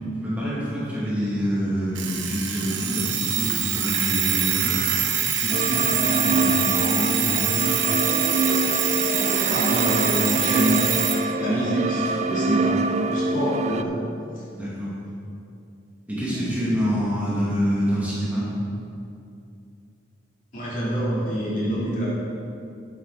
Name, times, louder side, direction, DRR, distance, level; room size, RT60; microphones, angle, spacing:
voice 1, 0.2-4.8 5.3-7.7 14.5-15.0 16.1-18.5, equal, 10° right, -9 dB, 2.2 m, -27 dB
Alarm, 2.0-11.2, right 8 dB, 70° right, 1.1 m, -25 dB
sound 1, 5.5-13.8, right 3 dB, 35° right, 0.3 m, -25 dB
voice 2, 9.4-10.9 11.4-12.8 13.1-14.0 16.3-16.5 20.5-22.1, equal, 40° left, -7 dB, 2.8 m, -26 dB
11.5 x 9.0 x 3.9 m, 2.5 s
head